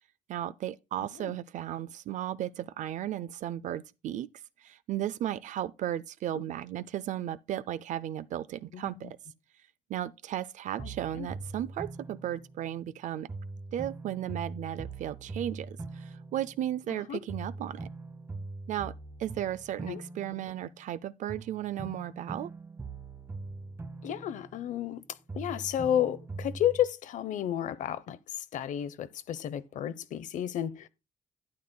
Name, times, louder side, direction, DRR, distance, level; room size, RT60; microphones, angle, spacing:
voice 1, 0.3-4.3 4.6-9.2 9.9-13.3 13.7-17.9 18.7-18.9 19.2-22.5, right 12 dB, 65° right, 0.4 m, -35 dB
sound 1, 10.8-12.9 13.3-17.0 17.3-20.9 21.3-25.0 25.3-26.9, right 3 dB, 20° right, 0.8 m, -42 dB
voice 2, 24.0-25.0 25.3-30.9, left 10 dB, 70° left, 0.6 m, -32 dB
12.5 x 9.5 x 2.2 m
cardioid pair, 145°, 14 cm